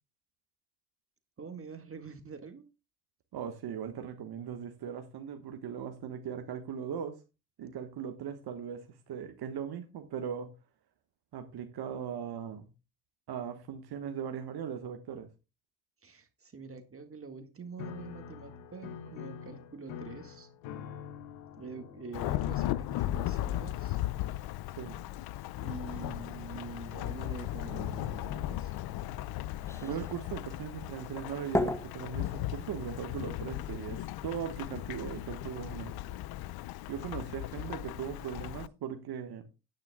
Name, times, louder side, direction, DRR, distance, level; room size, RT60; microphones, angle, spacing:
voice 1, 1.4-2.6 16.0-20.5 21.6-24.0 25.6-28.7 29.0-30.2, right 4 dB, 30° right, 1.8 m, -46 dB
voice 2, 3.3-7.2 7.6-10.5 11.3-12.7 13.3-15.3 24.8-25.0 29.8-36.0 36.9-39.4, right 8 dB, 55° right, 1.4 m, -39 dB
Piano, 17.8-24.6, left 8 dB, 70° left, 1.1 m, -46 dB
Thunderstorm / Rain, 22.1-38.7, left 14 dB, 55° left, 0.6 m, -37 dB
sound 1, 28.8-33.0, left 2 dB, 5° left, 0.5 m, -38 dB
17.0 x 9.4 x 2.3 m
hypercardioid pair, 65°, 46 cm